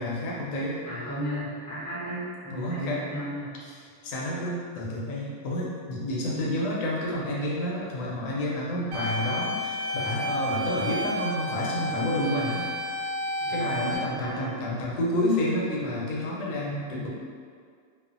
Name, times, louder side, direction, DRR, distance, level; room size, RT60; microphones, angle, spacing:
voice 1, 0.0-0.8 2.5-3.0 4.0-12.7 13.5-17.1, left 1 dB, 75° left, -4 dB, 1.1 m, -29 dB
voice 2, 0.8-3.6 6.3-6.6 13.4-14.5, equal, 20° left, -12 dB, 0.4 m, -34 dB
sound 1, 8.9-14.0, equal, 75° right, 1.1 m, -31 dB
2.6 x 2.4 x 2.4 m, 2.1 s
omnidirectional pair, 1.9 m